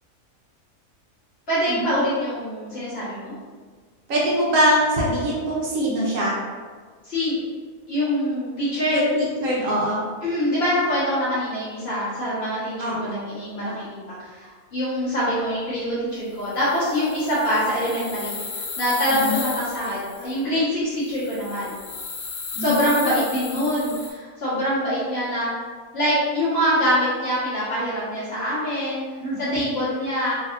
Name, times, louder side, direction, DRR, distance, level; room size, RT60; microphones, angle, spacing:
voice 1, 1.5-3.3 7.0-7.4 7.9-9.1 10.2-21.7 22.6-25.5 25.9-29.0 29.4-30.3, equal, 45° left, -10 dB, 1.3 m, -24 dB
voice 2, 4.1-6.4 8.9-10.0 12.8-13.2 19.1-19.4 22.6-23.2 29.2-29.6, equal, 70° right, -4 dB, 1.0 m, -23 dB
sound 1, 16.4-20.4 21.1-24.1, left 4 dB, 75° left, 1.0 m, -34 dB
3.3 x 2.6 x 2.5 m, 1.5 s
omnidirectional pair, 1.5 m